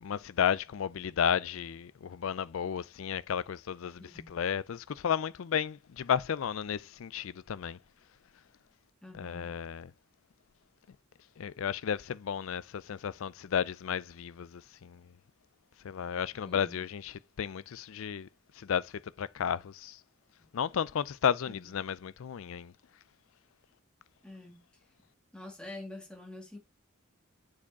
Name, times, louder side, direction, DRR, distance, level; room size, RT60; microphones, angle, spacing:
voice 1, 0.0-7.8 9.1-9.9 11.4-15.0 15.8-18.3 18.6-20.0 20.5-22.7, left 8 dB, 70° left, 0.4 m, -33 dB
voice 2, 4.0-4.4 9.0-9.6 16.5-16.8 21.5-21.7 24.2-24.6 25.3-26.6, left 2 dB, 5° left, 2.0 m, -46 dB
7.0 x 4.8 x 4.2 m
head